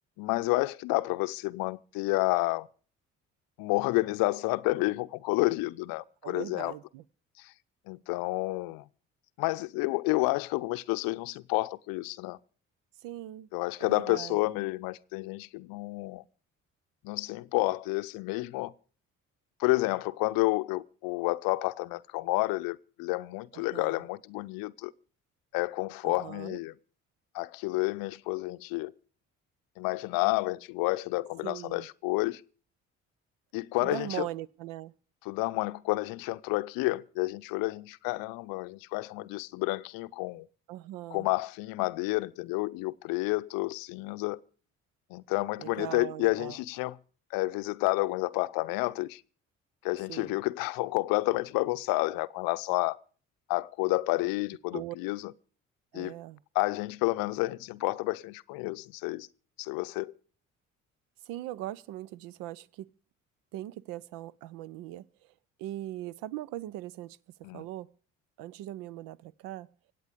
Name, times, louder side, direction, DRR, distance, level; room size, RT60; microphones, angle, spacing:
voice 1, 0.2-2.7 3.6-6.7 7.4-7.5 7.9-8.8 9.4-12.4 13.5-16.2 17.0-18.7 19.6-24.9 25.5-26.7 27.3-28.9 29.8-32.4 33.5-34.3 35.2-40.5 41.1-44.4 45.1-47.0 47.3-49.2 49.8-53.0 53.5-55.3 55.9-56.1 56.5-59.3 59.6-60.1 67.4-67.6, left 22 dB, 60° left, 0.6 m, -30 dB
voice 2, 6.2-7.0 13.0-13.5 13.8-14.4 23.5-24.0 26.0-26.6 31.4-31.9 33.8-34.9 40.7-41.3 45.6-46.6 50.1-50.4 54.7-55.0 55.9-56.4 61.2-62.9 63.5-65.0 65.6-67.2 67.5-67.9 68.4-69.7, right 14 dB, 60° right, 0.6 m, -40 dB
25.5 x 8.5 x 5.1 m
hypercardioid pair, 50°, 38 cm